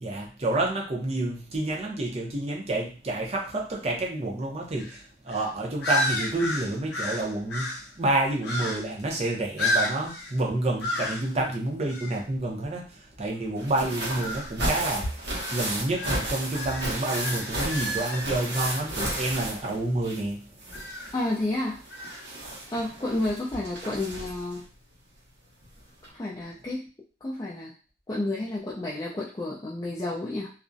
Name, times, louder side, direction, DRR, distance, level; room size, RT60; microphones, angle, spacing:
voice 1, 0.0-7.7 8.0-20.4, right 2 dB, 35° right, 0 dB, 0.6 m, -29 dB
sound 1, 4.8-5.0 5.3-5.5 5.8-7.9 8.4-9.0 9.6-10.4 10.8-11.3 11.9-12.2 14.0-14.5 15.3-19.3 20.7-21.2 21.9-22.2, left 2 dB, 70° left, 0.7 m, -32 dB
sound 2, 13.5-20.3 20.6-24.5 25.6-25.7 26.0-26.1, right 1 dB, 75° right, 0.9 m, -33 dB
voice 2, 21.1-21.8 22.7-24.6 26.1-26.9 27.2-27.7 28.1-30.5, left 2 dB, 20° left, -6 dB, 0.4 m, -30 dB
2.4 x 2.0 x 2.5 m, 0.36 s
head